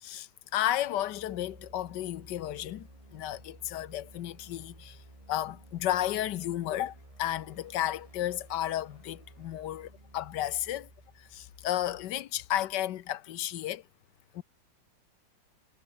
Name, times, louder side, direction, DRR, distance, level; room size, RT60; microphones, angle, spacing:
voice 1, 0.0-5.0 5.3-10.9 11.2-13.8 14.3-14.4, left 13 dB, 70° left, 1.4 m, -33 dB
sound 1, 0.8-12.6, right 1 dB, 15° right, 5.3 m, -54 dB
omnidirectional pair, 2.0 m